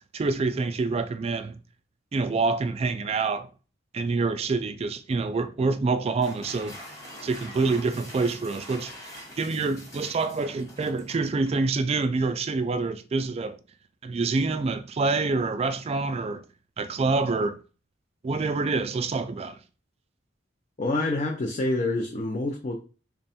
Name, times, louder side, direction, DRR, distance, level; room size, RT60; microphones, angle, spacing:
voice 1, 0.1-1.6 2.1-3.5 3.9-6.8 7.2-13.6 14.0-16.4 16.8-17.6 18.2-19.6, right 3 dB, 30° right, 0.3 m, -26 dB
sound 1, 6.0-11.6, left 1 dB, 15° left, 1.1 m, -44 dB
voice 2, 20.8-22.7, left 2 dB, 35° left, 0.5 m, -27 dB
3.4 x 2.2 x 4.1 m
head